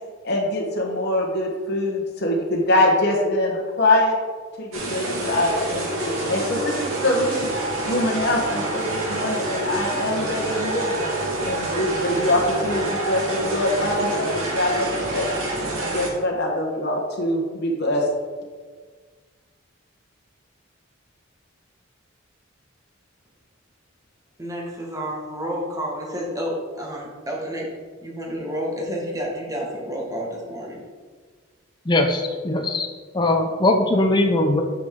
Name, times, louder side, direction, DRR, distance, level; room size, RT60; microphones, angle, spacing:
voice 1, 0.2-4.2 4.6-7.5 7.9-11.1 11.4-15.3 15.8-18.1, left 1 dB, 55° left, -1 dB, 1.2 m, -23 dB
sound 1, 4.7-16.1, right 1 dB, 80° right, 1.9 m, -27 dB
voice 2, 24.4-27.7 28.0-30.8, equal, 15° right, -2 dB, 1.7 m, -30 dB
voice 3, 31.8-32.9 33.1-34.6, left 2 dB, 20° left, 4 dB, 0.6 m, -20 dB
9.4 x 6.2 x 3.7 m, 1.6 s
head